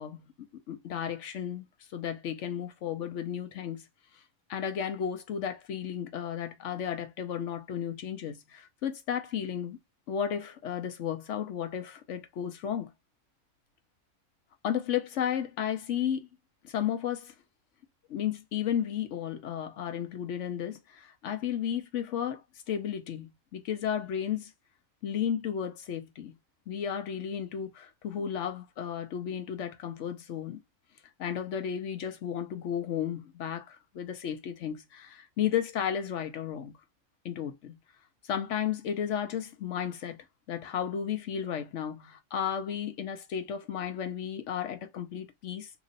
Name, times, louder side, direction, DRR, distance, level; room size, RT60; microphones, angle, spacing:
voice 1, 0.0-1.7 1.9-3.8 4.1-4.2 4.5-9.8 10.1-12.9 14.6-16.3 16.6-17.3 18.1-24.5 25.0-26.3 26.7-30.6 31.2-36.7 37.2-37.8 38.2-40.2 40.5-45.7, left 9 dB, 65° left, 0.9 m, -33 dB
3.0 x 2.4 x 3.9 m
omnidirectional pair, 1.4 m